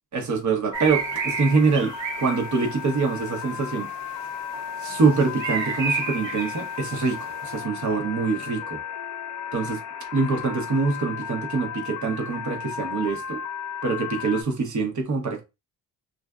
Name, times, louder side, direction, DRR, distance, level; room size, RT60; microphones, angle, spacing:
voice 1, 0.1-3.9 4.8-8.8 9.5-9.8 10.1-13.4 13.8-15.4, right 4 dB, 40° right, 1.0 m, -24 dB
Five with Beeps, 0.7-14.4, left 8 dB, 40° left, 0.5 m, -35 dB
sound 1, 0.7-7.6, right 6 dB, 75° right, 0.8 m, -33 dB
2.5 x 2.4 x 2.3 m
supercardioid pair, 80°, 46 cm